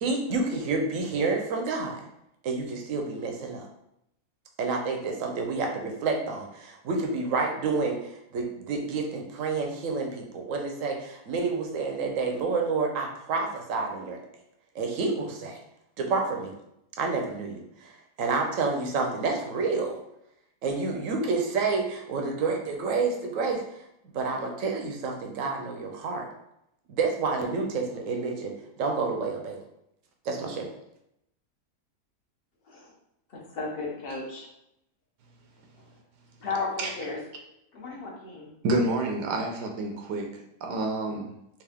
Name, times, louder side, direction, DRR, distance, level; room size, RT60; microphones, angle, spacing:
voice 1, 0.0-2.0 2.4-3.7 4.6-14.2 14.7-15.6 16.0-16.5 17.0-20.0 20.6-23.6 24.1-26.3 26.9-29.6 30.2-30.7, right 4 dB, 65° right, 2 dB, 0.9 m, -29 dB
voice 2, 33.3-34.5 36.4-37.2 37.7-38.5, left 3 dB, 45° left, -2 dB, 0.9 m, -34 dB
voice 3, 38.6-40.3 40.6-41.3, right 2 dB, 85° right, 2 dB, 1.2 m, -28 dB
3.6 x 2.7 x 3.4 m, 0.81 s
omnidirectional pair, 1.7 m